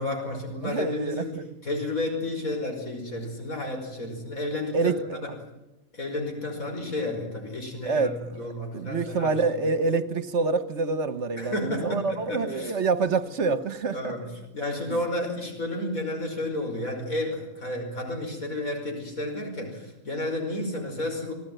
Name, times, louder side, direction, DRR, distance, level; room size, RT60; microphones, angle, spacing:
voice 1, 0.0-4.9 5.9-9.3 11.4-12.7 13.1-13.2 13.9-14.3 14.5-21.3, left 1 dB, 85° left, 5.9 m, -31 dB
voice 2, 0.6-1.4 4.7-5.2 7.8-8.5 8.7-14.1, right 4 dB, 55° right, 1.4 m, -27 dB
28.0 x 18.0 x 9.2 m
omnidirectional pair, 1.4 m